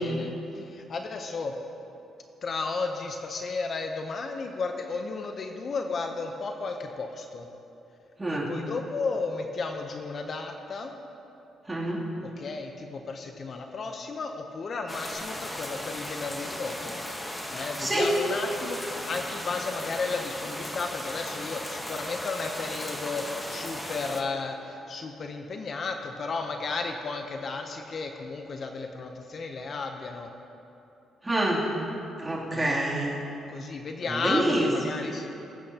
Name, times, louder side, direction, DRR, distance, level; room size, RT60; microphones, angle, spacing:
voice 1, 0.0-1.5 2.4-7.5 8.3-10.9 12.2-17.0 17.5-30.3 32.5-32.9 33.5-35.3, left 4 dB, 50° left, 4 dB, 0.8 m, -33 dB
voice 2, 11.7-12.0 17.8-18.1 31.2-31.7 32.2-33.1 34.2-34.7, right 1 dB, 20° right, -6 dB, 2.9 m, -26 dB
sound 1, 14.9-24.2, left 1 dB, 15° left, 1.3 m, -36 dB
20.0 x 8.7 x 2.9 m, 2.9 s
cardioid pair, 90°, 0 cm